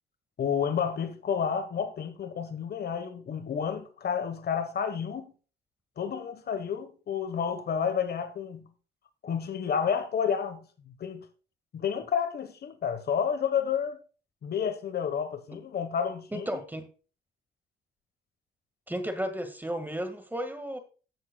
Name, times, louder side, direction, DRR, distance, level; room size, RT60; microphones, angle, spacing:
voice 1, 0.4-5.3 6.0-8.7 9.2-11.2 11.7-14.0 14.4-16.6, left 7 dB, 55° left, 1.2 m, -30 dB
voice 2, 16.3-16.9 18.9-20.8, equal, 10° right, 1.7 m, -33 dB
15.0 x 7.4 x 2.3 m
cardioid pair, 90°, 20 cm